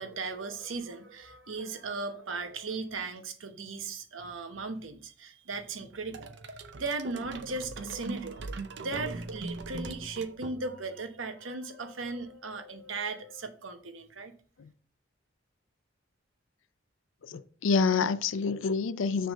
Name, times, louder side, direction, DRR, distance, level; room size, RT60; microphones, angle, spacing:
voice 1, 0.0-14.3, right 3 dB, 90° right, 0.9 m, -37 dB
sound 1, 6.1-11.0, right 3 dB, 60° right, 0.6 m, -40 dB
voice 2, 17.2-19.3, left 5 dB, 85° left, 0.5 m, -27 dB
6.3 x 3.5 x 5.1 m
head